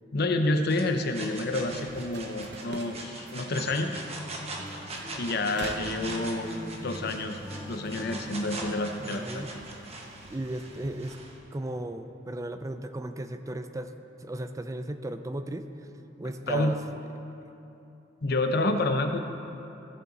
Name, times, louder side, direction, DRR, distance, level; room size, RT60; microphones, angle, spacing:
voice 1, 0.1-4.0 5.2-6.5 6.8-7.4 7.7-9.4 16.5-16.8 18.2-19.2, left 2 dB, 55° left, 6 dB, 0.7 m, -28 dB
sound 1, 0.7-11.4, right 2 dB, 35° right, 1.1 m, -41 dB
sound 2, 1.6-11.5, right 2 dB, 65° right, 0.7 m, -48 dB
Acoustic guitar, 3.6-9.0, left 1 dB, 20° left, 2.6 m, -41 dB
voice 2, 9.0-9.5 10.3-11.2 11.5-13.9 14.2-15.7 16.2-16.8, right 1 dB, 15° right, 9 dB, 0.4 m, -35 dB
16.0 x 7.6 x 4.0 m, 2.9 s
head